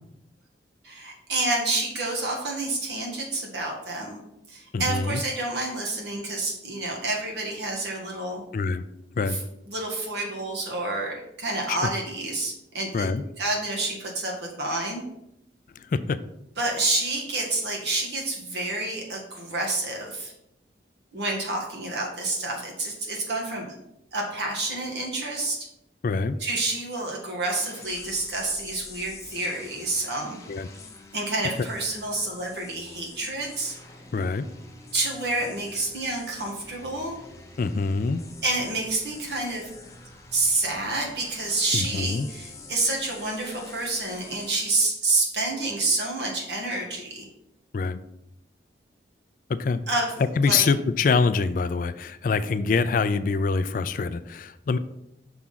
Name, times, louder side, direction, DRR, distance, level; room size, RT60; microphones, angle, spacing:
voice 1, 0.8-4.2 4.5-8.4 9.3-9.4 9.7-15.0 16.6-20.3 21.1-23.7 24.1-25.7 26.4-30.4 31.1-33.7 34.9-37.2 38.4-39.7 40.3-47.3 49.9-50.6, right 2 dB, 70° right, -1 dB, 1.8 m, -28 dB
voice 2, 4.7-5.2 8.5-8.8 9.2-9.4 11.7-11.8 12.9-13.2 15.9-16.2 26.0-26.4 30.5-30.7 34.1-34.5 37.6-38.2 41.7-42.3 47.7-48.0 49.5-49.8 50.4-54.8, left 4 dB, 50° left, 13 dB, 0.3 m, -25 dB
sound 1, 27.5-44.5, left 3 dB, 15° left, 0.7 m, -46 dB
5.9 x 3.7 x 5.6 m, 0.82 s
head